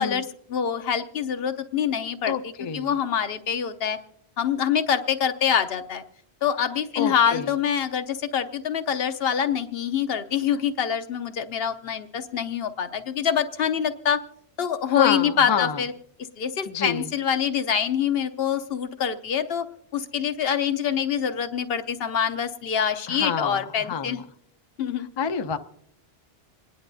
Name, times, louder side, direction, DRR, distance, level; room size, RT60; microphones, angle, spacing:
voice 1, 0.0-4.0 4.4-6.0 6.4-14.2 14.6-15.9 16.4-19.7 19.9-24.2 24.8-25.1, left 8 dB, 70° left, 9 dB, 0.9 m, -25 dB
voice 2, 2.2-2.9 7.0-7.5 14.9-15.8 16.7-17.1 23.1-24.2 25.2-25.6, left 7 dB, 40° left, 8 dB, 0.4 m, -27 dB
27.0 x 10.5 x 2.6 m, 0.71 s
omnidirectional pair, 1.1 m